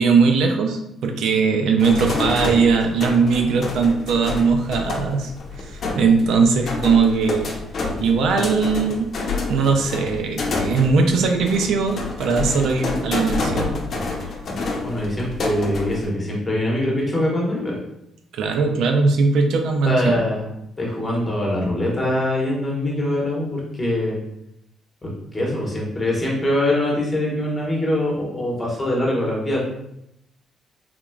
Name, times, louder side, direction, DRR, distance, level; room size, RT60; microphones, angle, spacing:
voice 1, 0.0-5.3 5.6-7.5 8.0-9.1 9.5-13.7 18.3-20.2, right 4 dB, 80° right, 4 dB, 0.4 m, -19 dB
sound 1, 1.8-16.1, left 3 dB, 55° left, 0.7 m, -28 dB
voice 2, 14.8-17.8 19.8-20.5 20.8-24.2 25.0-29.6, left 1 dB, 20° left, -3 dB, 1.3 m, -23 dB
3.6 x 2.9 x 2.3 m, 0.80 s
cardioid pair, 90°, 0 cm